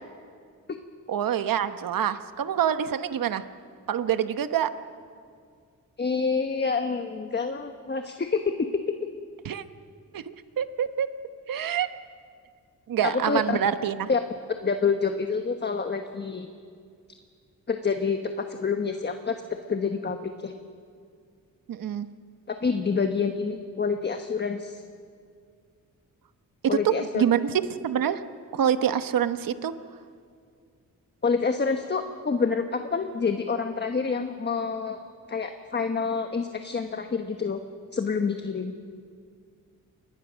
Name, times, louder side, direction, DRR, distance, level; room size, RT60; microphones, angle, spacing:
voice 1, 1.1-3.4 3.9-4.7 9.4-9.6 10.1-11.1 11.5-11.9 12.9-14.1 21.7-22.1 26.7-27.5 27.8-28.2 28.5-29.7, right 9 dB, 85° right, 10 dB, 1.1 m, -26 dB
voice 2, 6.0-8.9 13.0-13.6 14.1-14.2 14.6-16.5 17.7-19.4 19.7-20.5 22.5-24.8 26.7-27.2 31.2-35.0 35.3-37.6 37.9-38.7, left 5 dB, 30° left, 6 dB, 1.2 m, -27 dB
28.5 x 22.5 x 6.3 m, 2.2 s
wide cardioid pair, 115°, 33 cm